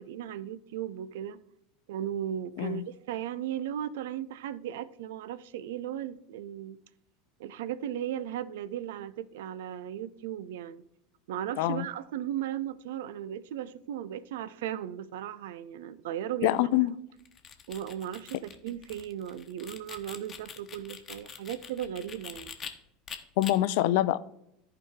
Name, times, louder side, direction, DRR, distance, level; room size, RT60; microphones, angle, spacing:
voice 1, 0.0-1.4 1.9-6.8 7.4-10.8 11.3-16.9 17.7-22.5, right 10 dB, 65° right, 0.5 m, -36 dB
voice 2, 16.4-16.9 23.4-24.2, left 14 dB, 60° left, 0.4 m, -25 dB
sound 1, 17.2-22.7 23.1-23.5, left 7 dB, 30° left, 1.1 m, -44 dB
14.0 x 4.7 x 3.6 m
figure-of-eight pair, 75°, 0 cm